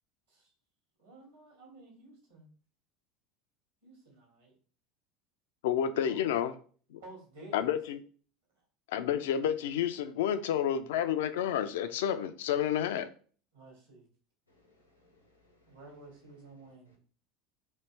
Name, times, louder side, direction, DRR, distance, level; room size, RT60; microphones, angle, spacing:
voice 1, 1.0-2.5 3.8-4.5 6.1-6.2 7.0-7.7 13.5-14.0 15.7-17.0, right 2 dB, 75° right, 1.4 m, -52 dB
voice 2, 5.6-6.5 6.9-7.0 7.5-8.0 8.9-13.1, left 9 dB, 65° left, 0.3 m, -30 dB
voice 3, 14.5-15.9 16.4-17.0, left 2 dB, 85° left, 0.8 m, -67 dB
3.1 x 2.5 x 3.2 m
figure-of-eight pair, 70°, 0 cm